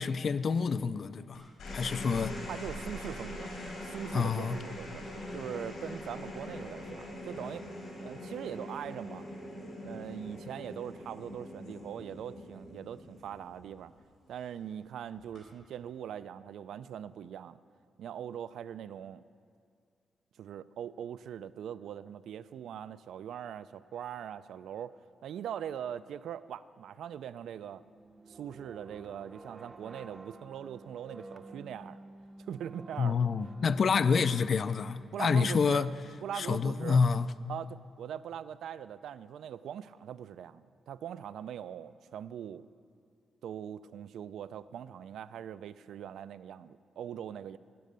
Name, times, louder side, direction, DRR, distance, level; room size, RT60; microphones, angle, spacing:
voice 1, 0.0-1.4 1.7-2.4 4.1-4.6 33.0-35.9 36.3-37.3, left 5 dB, 40° left, 0.3 m, -28 dB
sound 1, 1.3-13.9 15.2-15.6, left 1 dB, 85° left, 4.4 m, -43 dB
voice 2, 2.5-5.0 5.3-7.6 8.0-9.3 9.8-13.9 14.3-17.6 18.0-19.2 20.4-24.9 25.2-27.8 28.3-32.0 32.5-33.3 35.1-35.9 36.2-37.0 37.5-42.7 43.4-47.6, right 9 dB, 90° right, 0.4 m, -41 dB
sound 2, 27.8-36.6, right 2 dB, 25° right, 0.6 m, -51 dB
12.5 x 10.5 x 6.7 m
wide cardioid pair, 170°, 0 cm